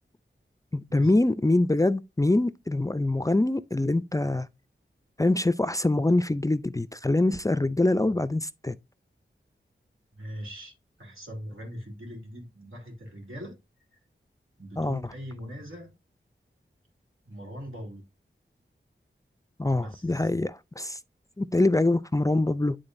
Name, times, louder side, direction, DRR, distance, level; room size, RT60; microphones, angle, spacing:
voice 1, 0.7-4.5 5.2-8.8 14.8-15.0 19.6-21.0 21.4-22.8, left 2 dB, 15° left, 0.4 m, -24 dB
voice 2, 10.1-13.6 14.6-15.9 17.2-18.0 19.8-20.3, equal, 85° right, 3.1 m, -41 dB
10.5 x 3.7 x 2.6 m
wide cardioid pair, 65°, 20 cm